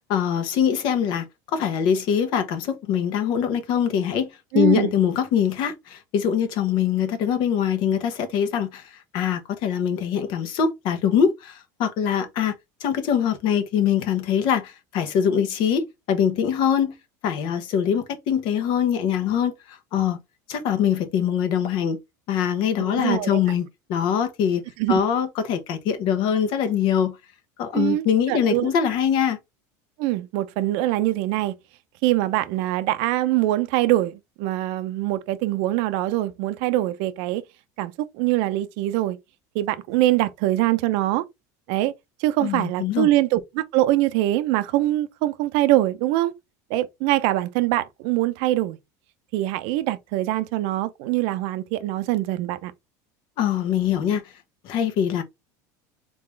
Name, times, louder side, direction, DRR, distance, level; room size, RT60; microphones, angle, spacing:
voice 1, 0.1-4.3 4.5-12.5 12.8-16.9 17.2-20.2 20.5-22.0 22.3-24.6 24.9-27.2 27.6-29.4 42.4-43.1 53.4-54.3 54.6-55.2, left 8 dB, 60° left, 1.2 m, -23 dB
voice 2, 4.5-4.9 22.8-23.4 24.8-25.0 27.7-28.7 30.0-31.6 32.0-37.4 37.8-39.2 39.5-41.2 41.7-41.9 42.2-46.3 46.7-48.8 49.3-52.7, right 15 dB, 65° right, 0.7 m, -23 dB
3.9 x 3.7 x 3.2 m
supercardioid pair, 120°, 9 cm